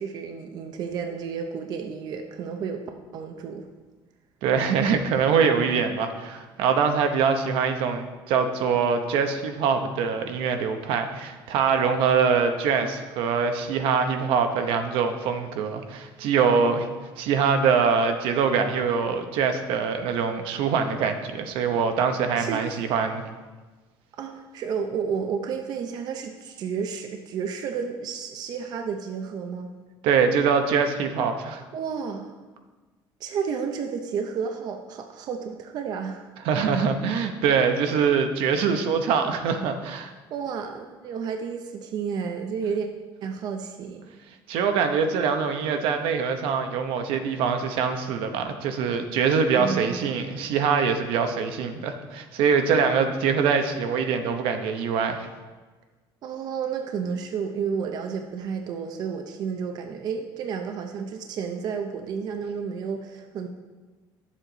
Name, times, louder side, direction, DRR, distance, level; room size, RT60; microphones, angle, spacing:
voice 1, 0.0-2.8 3.1-3.7 22.3-22.6 24.2-29.7 31.7-32.3 33.2-36.3 40.3-42.9 43.2-44.1 49.5-50.2 56.2-63.5, right 6 dB, 45° right, 4 dB, 0.6 m, -31 dB
voice 2, 4.4-16.9 17.2-23.3 30.0-31.6 36.4-40.1 44.5-55.3, right 6 dB, 75° right, 6 dB, 0.9 m, -24 dB
10.0 x 7.4 x 3.9 m, 1.3 s
cardioid pair, 160°, 9 cm